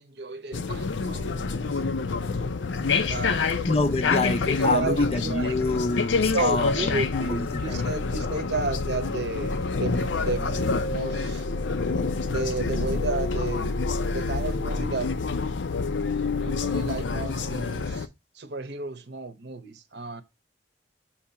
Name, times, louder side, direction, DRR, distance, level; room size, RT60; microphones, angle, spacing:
voice 1, 0.0-1.8 3.1-3.6 4.6-5.8 6.3-11.5 12.3-13.8 14.1-15.1 16.4-18.1 18.3-20.2, right 3 dB, 65° right, 0.8 m, -32 dB
sound 1, 0.5-18.1, left 4 dB, 85° left, 0.6 m, -27 dB
voice 2, 3.6-7.8, left 3 dB, 30° left, 0.5 m, -26 dB
7.2 x 2.8 x 5.6 m
head